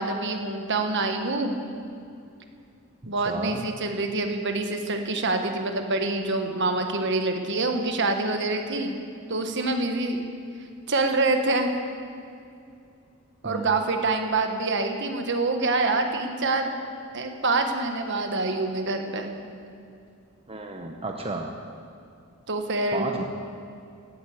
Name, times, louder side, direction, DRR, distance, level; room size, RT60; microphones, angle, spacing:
voice 1, 0.0-1.6 3.1-8.9 9.3-10.2 10.9-11.7 13.4-16.7 17.1-19.3 22.5-23.1, right 3 dB, 55° right, 5 dB, 1.4 m, -26 dB
voice 2, 3.0-3.6 13.4-13.7 20.5-21.5 22.9-23.2, right 2 dB, 25° right, 2 dB, 0.8 m, -32 dB
16.0 x 9.2 x 8.6 m, 2.5 s
head